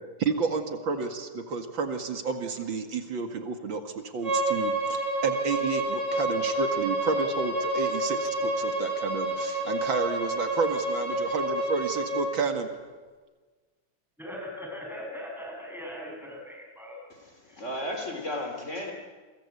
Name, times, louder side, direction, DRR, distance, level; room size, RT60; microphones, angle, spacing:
voice 1, 0.2-12.7, right 4 dB, 80° right, 5 dB, 2.8 m, -31 dB
Bowed string instrument, 4.2-12.3, right 2 dB, 35° right, 7.2 m, -29 dB
voice 2, 14.2-17.1 17.5-17.7, left 1 dB, ahead, -1 dB, 7.7 m, -40 dB
voice 3, 17.4-18.9, left 1 dB, 40° left, 3 dB, 3.4 m, -34 dB
29.5 x 23.0 x 8.5 m, 1.4 s
omnidirectional pair, 2.1 m